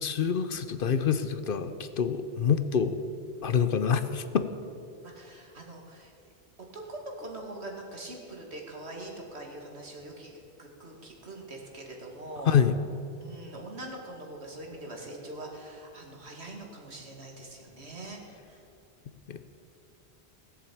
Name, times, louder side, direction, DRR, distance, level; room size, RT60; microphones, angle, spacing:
voice 1, 0.0-3.0 3.4-4.5 12.4-12.7 19.3-19.4, left 7 dB, 60° left, 11 dB, 0.8 m, -26 dB
voice 2, 5.0-6.1 6.7-12.6 13.2-18.2 18.5-18.6, right 2 dB, 80° right, 1 dB, 2.5 m, -43 dB
17.0 x 7.5 x 8.6 m, 2.6 s
omnidirectional pair, 1.1 m